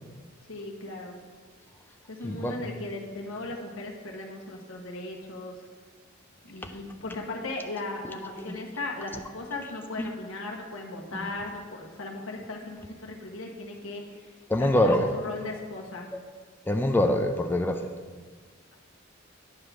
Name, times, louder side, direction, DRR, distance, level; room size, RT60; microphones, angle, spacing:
voice 1, 0.5-1.2 2.1-5.5 6.5-14.0 14.6-14.9 15.2-16.1, left 2 dB, 80° left, 0 dB, 1.1 m, -37 dB
voice 2, 2.2-2.6 6.6-6.7 8.5-8.6 10.0-10.1 11.1-11.2 14.5-15.1 16.7-17.8, left 1 dB, 10° left, 5 dB, 0.3 m, -24 dB
9.6 x 3.4 x 6.0 m, 1.5 s
head